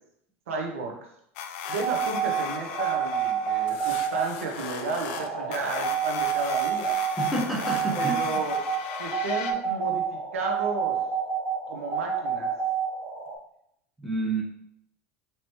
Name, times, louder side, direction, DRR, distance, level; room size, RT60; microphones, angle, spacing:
voice 1, 0.5-1.0 1.7-6.9 7.9-8.6 9.0-11.0 11.7-12.5, right 3 dB, 85° right, 1 dB, 0.7 m, -33 dB
sound 1, 1.4-9.5, left 7 dB, 70° left, 0.4 m, -37 dB
sound 2, 1.7-13.4, right 7 dB, 40° right, 0.9 m, -29 dB
voice 2, 7.1-8.1 14.0-14.4, right 2 dB, ahead, -3 dB, 1.2 m, -29 dB
4.6 x 2.9 x 3.0 m, 0.74 s
hypercardioid pair, 85°, 7 cm